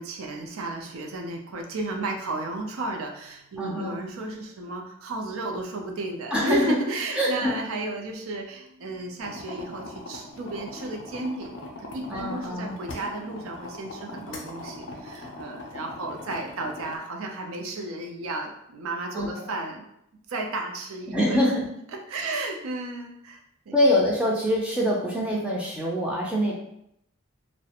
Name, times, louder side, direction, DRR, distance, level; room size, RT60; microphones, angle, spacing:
voice 1, 0.0-19.9 20.3-21.4 22.1-23.8, right 2 dB, 80° right, 2 dB, 0.4 m, -33 dB
voice 2, 3.6-4.0 6.3-6.7 7.1-7.5 12.1-12.7 19.1-19.5 21.1-21.6 23.7-26.5, left 1 dB, 5° right, -4 dB, 0.4 m, -24 dB
sound 1, 9.2-17.0, left 2 dB, 60° left, 0.4 m, -40 dB
2.4 x 2.1 x 2.8 m, 0.78 s
head